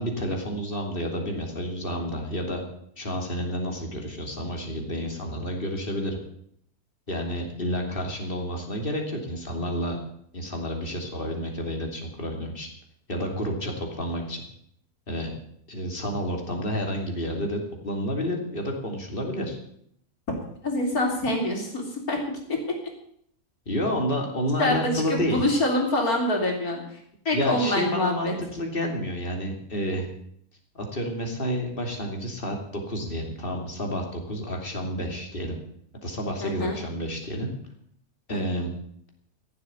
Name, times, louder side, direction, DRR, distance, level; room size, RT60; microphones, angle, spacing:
voice 1, 0.0-2.6 3.0-6.2 7.1-10.0 10.3-12.7 13.1-14.4 15.1-15.3 15.7-19.6 23.7-25.4 27.3-30.1 30.7-35.6 36.0-37.5 38.3-38.7, equal, 35° left, 2 dB, 3.1 m, -30 dB
voice 2, 20.6-22.6 24.6-26.8 27.3-28.3 36.4-36.8 38.3-38.4, left 1 dB, 80° left, 1 dB, 4.1 m, -25 dB
15.0 x 7.8 x 9.3 m, 0.68 s
omnidirectional pair, 1.5 m